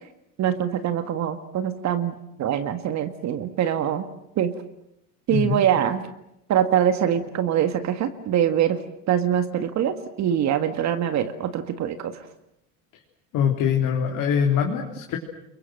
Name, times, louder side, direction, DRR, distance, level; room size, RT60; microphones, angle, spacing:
voice 1, 0.4-4.1 4.4-4.5 5.3-6.0 6.5-8.8 9.1-12.1, right 9 dB, 45° right, 9 dB, 1.9 m, -23 dB
voice 2, 13.3-15.2, left 7 dB, 50° left, 0 dB, 3.6 m, -23 dB
28.5 x 23.0 x 7.8 m, 0.82 s
supercardioid pair, 130°, 40 cm